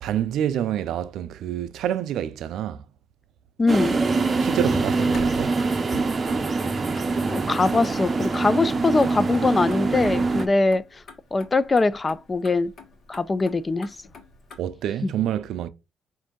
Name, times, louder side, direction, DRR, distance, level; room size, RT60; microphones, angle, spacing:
voice 1, 0.0-2.9 4.4-5.6 14.6-15.7, right 10 dB, 80° right, 0.3 m, -27 dB
voice 2, 3.6-4.0 7.3-11.0 11.3-12.7 13.1-14.0 15.0-15.1, left 3 dB, 25° left, 0.3 m, -22 dB
sound 1, 3.7-10.5, right 3 dB, 35° right, 0.6 m, -24 dB
Motor vehicle (road), 4.8-14.6, left 4 dB, 60° left, 1.2 m, -47 dB
5.2 x 2.6 x 3.6 m
cardioid pair, 90°, 0 cm